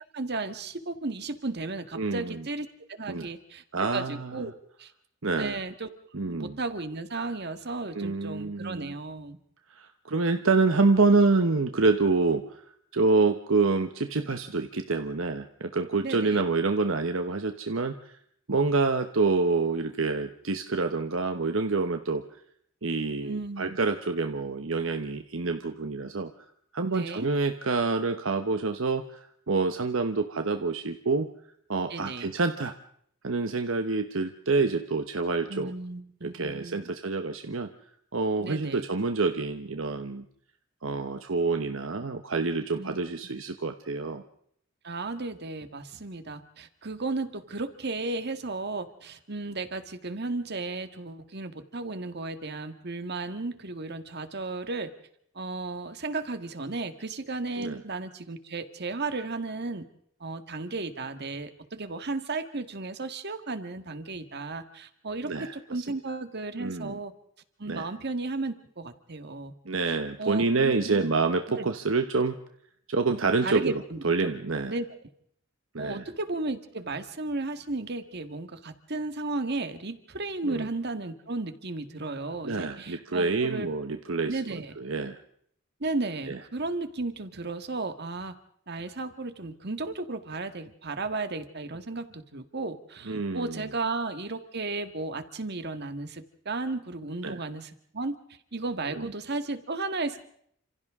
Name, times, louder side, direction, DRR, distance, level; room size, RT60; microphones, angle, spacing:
voice 1, 0.1-3.6 3.9-4.5 4.8-4.9 5.4-9.4 16.0-16.4 23.2-23.8 26.9-27.3 31.9-32.3 35.5-36.9 38.4-38.8 42.8-43.0 44.8-54.9 55.4-59.9 60.2-67.1 67.6-69.5 70.2-71.1 71.6-71.7 73.4-74.0 74.7-74.9 75.8-83.7 84.3-84.7 85.8-88.3 88.7-98.2 98.5-100.3, right 3 dB, 55° right, 9 dB, 1.7 m, -34 dB
voice 2, 1.9-2.4 3.1-3.3 3.7-4.4 5.2-5.6 6.1-6.6 7.9-8.9 9.7-12.6 12.9-18.0 18.5-22.2 22.8-26.3 26.7-29.2 29.5-31.3 31.7-32.7 33.2-35.7 36.2-37.7 38.1-40.2 40.8-44.2 57.6-57.8 65.3-65.6 66.6-67.0 67.7-67.9 69.6-72.4 72.9-74.7 75.7-76.0 80.4-80.7 82.4-85.2 86.3-86.4 93.1-93.7 97.2-97.4 98.9-99.1, right 3 dB, 70° right, 7 dB, 1.1 m, -27 dB
30.0 x 27.0 x 3.7 m, 0.68 s
head